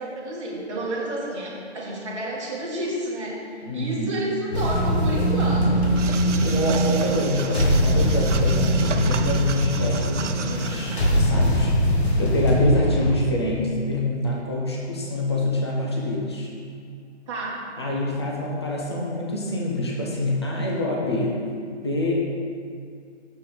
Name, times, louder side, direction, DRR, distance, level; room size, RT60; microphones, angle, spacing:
voice 1, 0.0-6.0 17.3-17.6, right 1 dB, 25° right, -8 dB, 2.0 m, -30 dB
voice 2, 3.6-4.2 6.4-11.7 12.2-16.5 17.8-21.3 21.7-22.1, left 1 dB, 25° left, -3 dB, 0.8 m, -26 dB
sound 1, 4.5-13.1, equal, 60° left, 2.0 m, -22 dB
sound 2, 6.0-11.2, right 6 dB, 90° right, 0.8 m, -35 dB
6.8 x 6.5 x 6.9 m, 2.3 s
hypercardioid pair, 180°, 35 cm